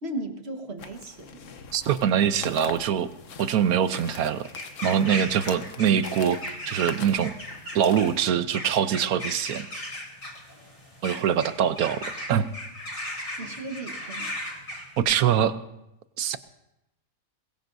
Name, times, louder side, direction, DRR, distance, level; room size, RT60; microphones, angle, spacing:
voice 1, 0.0-1.5 13.4-14.4, right 2 dB, 45° right, 4 dB, 1.8 m, -36 dB
sound 1, 0.8-8.3, left 6 dB, 65° left, 1.2 m, -43 dB
sound 2, 1.7-15.0, left 1 dB, 35° left, 4.3 m, -38 dB
voice 2, 1.7-3.1 3.4-4.4 4.8-7.3 7.7-9.7 11.0-12.0 12.3-12.5 15.0-15.6 16.2-16.4, right 8 dB, 90° right, 12 dB, 1.2 m, -23 dB
21.5 x 21.5 x 2.7 m, 0.88 s
omnidirectional pair, 1.5 m